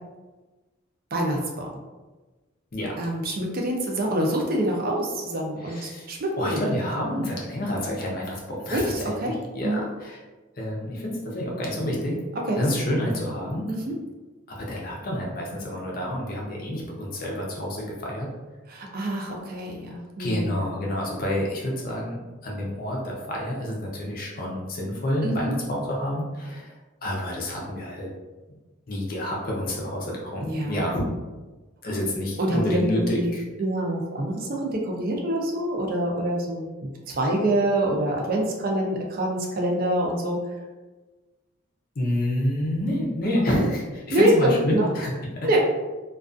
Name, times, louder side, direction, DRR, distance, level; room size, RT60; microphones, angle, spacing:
voice 1, 1.1-1.7 3.0-7.0 8.7-9.3 9.6-9.8 12.5-12.6 13.7-13.9 18.7-20.7 25.2-25.5 30.4-30.9 32.4-33.3 33.6-40.6 43.6-43.7 44.1-44.9 45.4-45.6, right 1 dB, 45° right, -1 dB, 0.4 m, -26 dB
voice 2, 5.6-6.1 6.4-10.2 10.6-12.2 12.6-13.7 14.5-18.3 20.2-26.7 27.0-28.1 28.9-31.1 31.8-33.4 42.0-45.6, left 1 dB, 45° left, -2 dB, 0.5 m, -28 dB
2.3 x 2.3 x 2.4 m, 1.2 s
head